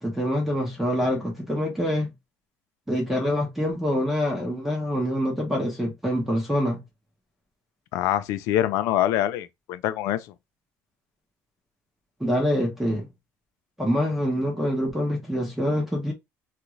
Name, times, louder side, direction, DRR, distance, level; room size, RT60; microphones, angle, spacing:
voice 1, 0.0-2.1 2.9-6.8 12.2-13.1 13.8-16.1, equal, 5° right, 0.8 m, -25 dB
voice 2, 7.9-10.3, left 12 dB, 80° left, 0.4 m, -25 dB
2.5 x 2.4 x 3.0 m
cardioid pair, 165°, 5 cm